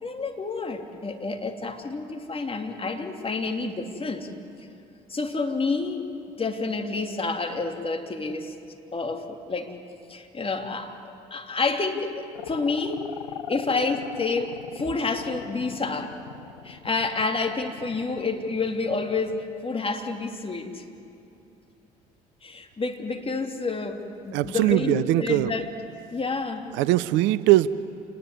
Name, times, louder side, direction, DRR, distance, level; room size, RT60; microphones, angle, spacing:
voice 1, 0.0-4.3 5.1-6.1 6.4-8.5 8.9-9.7 10.1-13.1 13.5-16.2 16.6-20.8 22.4-25.7 26.1-26.7, left 3 dB, 25° left, 4 dB, 3.0 m, -29 dB
sound 1, 12.3-19.4, left 9 dB, 85° left, 0.7 m, -40 dB
voice 2, 24.3-25.5 26.8-27.8, right 15 dB, 65° right, 17 dB, 0.6 m, -21 dB
28.0 x 19.5 x 9.7 m, 2.6 s
figure-of-eight pair, 50°, 21 cm